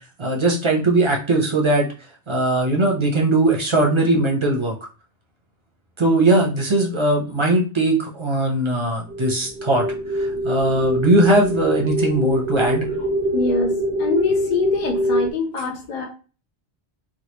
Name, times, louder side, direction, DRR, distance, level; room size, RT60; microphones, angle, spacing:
voice 1, 0.2-1.9 2.3-4.7 6.0-9.9 10.2-12.9, right 2 dB, 35° right, -1 dB, 0.6 m, -19 dB
sound 1, 9.1-15.3, equal, 85° right, 0.9 m, -24 dB
voice 2, 13.3-13.7 14.0-16.1, left 4 dB, 50° left, -1 dB, 0.7 m, -23 dB
3.3 x 2.3 x 2.9 m, 0.35 s
omnidirectional pair, 1.1 m